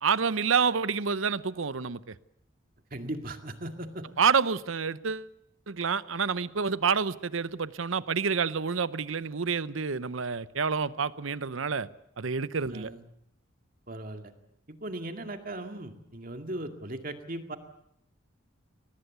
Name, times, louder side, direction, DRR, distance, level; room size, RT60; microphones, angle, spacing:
voice 1, 0.0-2.1 4.2-5.3 5.7-11.9 12.2-12.9, right 5 dB, 80° right, 17 dB, 0.8 m, -28 dB
voice 2, 2.9-4.1 12.7-13.0 13.9-14.3 14.7-17.6, right 1 dB, 45° right, 6 dB, 2.1 m, -38 dB
22.5 x 19.5 x 8.2 m, 0.76 s
head